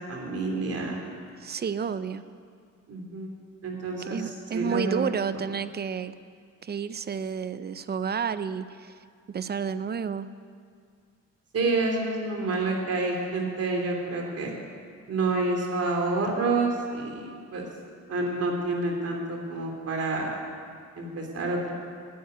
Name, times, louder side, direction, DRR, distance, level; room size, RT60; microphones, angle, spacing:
voice 1, 0.1-1.0 2.9-3.3 3.6-5.1 11.5-14.5 15.1-17.6 18.1-20.4 21.0-21.7, right 3 dB, 55° right, 1 dB, 2.9 m, -28 dB
voice 2, 1.4-2.2 4.0-6.1 6.6-8.9 9.3-10.3, right 7 dB, 35° right, 13 dB, 0.6 m, -30 dB
9.4 x 9.3 x 9.3 m, 2.1 s
cardioid pair, 90°, 30 cm